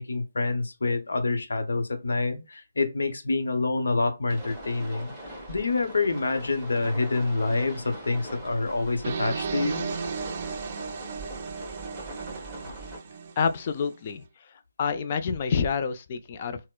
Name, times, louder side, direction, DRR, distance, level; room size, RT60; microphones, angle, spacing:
voice 1, 0.0-5.1 5.5-9.8, left 3 dB, 70° left, 0.7 m, -27 dB
sound 1, 4.3-13.0, right 1 dB, 5° right, 1.6 m, -41 dB
sound 2, 9.0-14.0, right 5 dB, 40° right, 0.4 m, -35 dB
voice 2, 13.4-16.6, left 6 dB, 35° left, 0.4 m, -28 dB
4.3 x 2.0 x 2.2 m
figure-of-eight pair, 155°, 0 cm